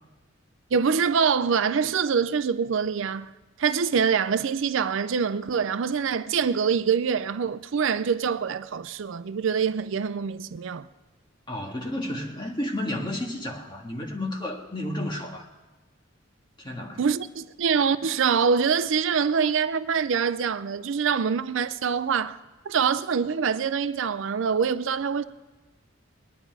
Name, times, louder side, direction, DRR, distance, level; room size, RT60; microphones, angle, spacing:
voice 1, 0.7-3.3 3.6-10.9 17.0-22.4 22.7-25.2, right 6 dB, 65° right, 0.4 m, -25 dB
voice 2, 11.5-15.5 16.6-17.0, left 1 dB, 20° left, 1.7 m, -32 dB
20.5 x 10.0 x 4.7 m
head